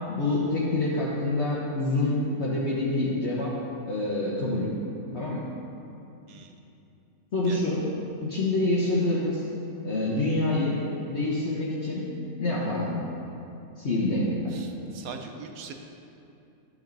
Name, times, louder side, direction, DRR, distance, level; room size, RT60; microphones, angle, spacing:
voice 1, 0.0-3.5 3.9-4.7 5.1-5.5 7.3-7.8 8.2-9.4 9.8-10.8 11.1-12.1 12.4-13.0 13.8-14.6, left 2 dB, 55° left, -7 dB, 1.4 m, -26 dB
voice 2, 6.3-6.6 7.4-7.6 14.5-15.7, right 6 dB, 90° right, 5 dB, 1.2 m, -42 dB
12.0 x 6.2 x 4.0 m, 2.7 s
omnidirectional pair, 1.4 m